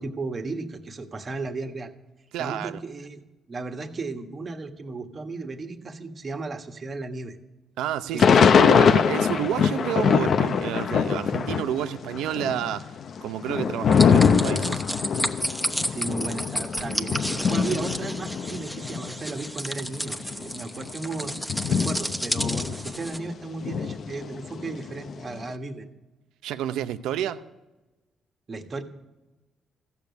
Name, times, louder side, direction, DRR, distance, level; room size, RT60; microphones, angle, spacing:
voice 1, 0.0-1.9 2.4-3.2 3.5-7.4 8.1-8.8 15.9-25.9 28.5-28.8, right 3 dB, 40° right, 5 dB, 1.5 m, -35 dB
voice 2, 2.3-2.8 7.8-12.9 13.2-14.8 26.4-27.4, right 10 dB, 90° right, 11 dB, 0.6 m, -30 dB
Thunder / Rain, 8.2-11.8 12.1-19.2 19.8-19.9 20.1-23.3 23.6-25.4, left 6 dB, 55° left, 0.6 m, -23 dB
sound 1, 13.9-23.2, equal, ahead, 1.0 m, -32 dB
sound 2, 13.9-14.5 16.8-17.0, right 4 dB, 65° right, 1.7 m, -43 dB
15.0 x 7.0 x 9.6 m, 1.1 s
cardioid pair, 90°, 0 cm